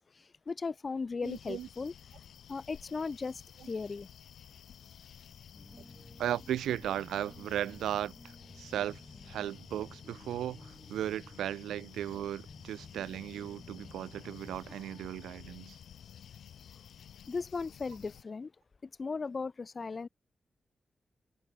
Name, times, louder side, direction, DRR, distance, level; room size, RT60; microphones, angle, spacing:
voice 1, 0.0-1.9 2.5-3.4 3.7-4.1 17.3-18.5 18.8-20.1, left 4 dB, 50° left, 1.2 m, -37 dB
sound 1, 1.2-18.2, left 9 dB, 80° left, 0.6 m, -53 dB
voice 2, 1.2-1.7 6.2-15.8, right 11 dB, 90° right, 0.3 m, -36 dB
sound 2, 5.5-15.3, left 1 dB, 10° left, 3.9 m, -55 dB
supercardioid pair, 40°, 0 cm